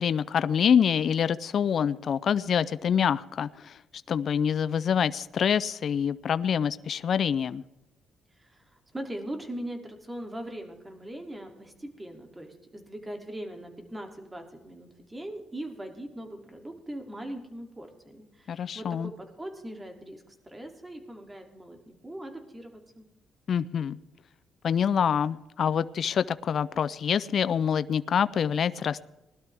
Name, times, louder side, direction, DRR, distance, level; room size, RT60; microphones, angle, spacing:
voice 1, 0.0-3.8 4.1-7.6 18.5-19.1 23.5-24.0 24.6-29.0, left 8 dB, 55° left, 15 dB, 0.4 m, -26 dB
voice 2, 8.4-23.1, right 1 dB, 15° right, 3 dB, 2.7 m, -40 dB
20.0 x 12.0 x 3.5 m, 0.98 s
cardioid pair, 90°, 0 cm